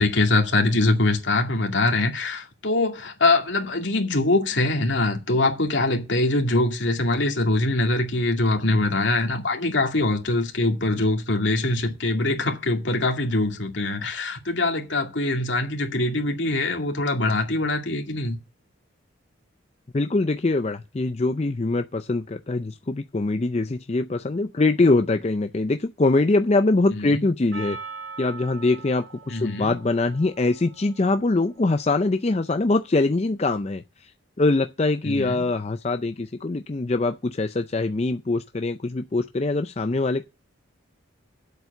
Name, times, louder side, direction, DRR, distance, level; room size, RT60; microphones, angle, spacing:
voice 1, 0.0-18.4 26.9-27.2 29.3-29.8 35.0-35.5, left 2 dB, 65° left, 2.3 m, -23 dB
voice 2, 19.9-27.8 28.2-34.1 34.4-40.2, left 2 dB, 30° left, 0.4 m, -23 dB
Percussion, 27.5-32.1, right 5 dB, 70° right, 2.2 m, -42 dB
8.0 x 7.2 x 6.6 m
head